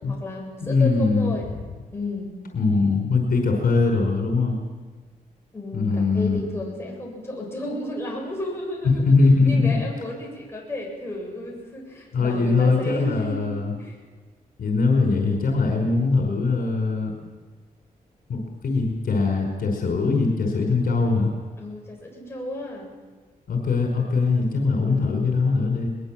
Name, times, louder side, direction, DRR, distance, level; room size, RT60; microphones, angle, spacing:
voice 1, 0.1-1.5 1.9-2.3 5.5-13.5 13.8-14.0 21.6-22.9 24.8-25.3, left 1 dB, 15° left, -2 dB, 7.9 m, -33 dB
voice 2, 0.6-1.3 2.5-4.6 5.7-6.4 9.0-9.8 12.1-13.7 14.6-17.1 18.3-21.3 23.5-25.9, left 3 dB, 70° left, 2 dB, 5.0 m, -21 dB
22.0 x 21.5 x 7.6 m, 1.4 s
wide cardioid pair, 130°, 16 cm